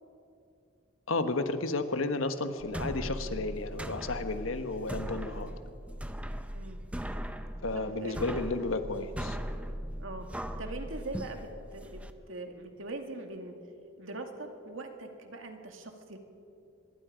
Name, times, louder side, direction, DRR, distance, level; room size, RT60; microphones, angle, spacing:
voice 1, 1.1-5.5 7.6-9.4, left 3 dB, 85° left, 9 dB, 1.3 m, -32 dB
sound 1, 2.6-12.1, equal, 5° right, 0.7 m, -39 dB
voice 2, 7.7-8.5 10.0-12.0 12.3-13.5 14.0-16.2, right 2 dB, 75° right, 4 dB, 2.3 m, -42 dB
24.0 x 22.0 x 5.2 m, 2.5 s
head